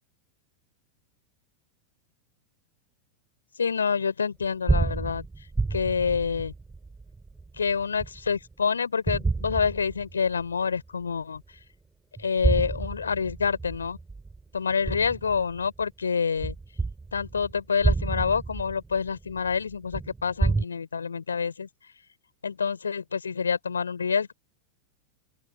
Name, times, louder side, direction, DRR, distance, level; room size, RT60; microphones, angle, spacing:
voice 1, 3.6-5.2 5.7-6.5 7.6-11.4 12.2-14.0 14.5-16.5 17.1-21.7 22.4-24.3, left 6 dB, 75° left, 4.5 m, -27 dB
sound 1, 4.4-8.5 9.1-10.4 10.9-11.0 12.2-15.8 16.4-20.6, right 3 dB, 10° right, 5.8 m, -29 dB
open air
figure-of-eight pair, 90°, 0 cm